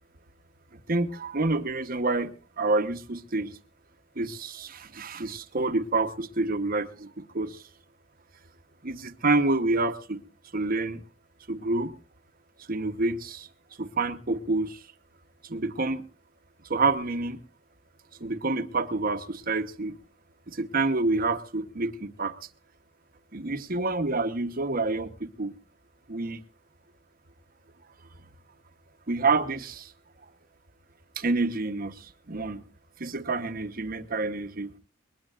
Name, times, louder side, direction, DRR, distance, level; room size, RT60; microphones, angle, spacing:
voice 1, 0.9-3.6 4.2-7.6 8.8-10.2 10.5-11.0 11.5-11.9 12.7-13.5 13.8-14.8 15.4-16.0 16.7-17.4 18.2-20.0 20.5-22.3 23.3-25.6 26.1-26.4 29.1-29.9 31.2-32.6 33.0-34.7, right 3 dB, 50° right, 9 dB, 1.0 m, -28 dB
21.5 x 20.5 x 2.5 m, 0.35 s
head